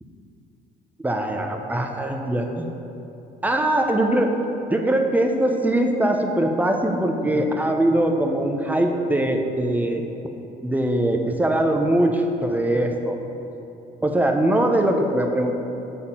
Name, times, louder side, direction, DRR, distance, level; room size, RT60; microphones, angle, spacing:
voice 1, 1.0-2.7 3.4-4.4 4.7-10.0 10.6-13.2 14.0-15.5, right 1 dB, 10° right, 3 dB, 0.6 m, -21 dB
6.9 x 4.3 x 5.6 m, 2.9 s
cardioid pair, 110°, 17 cm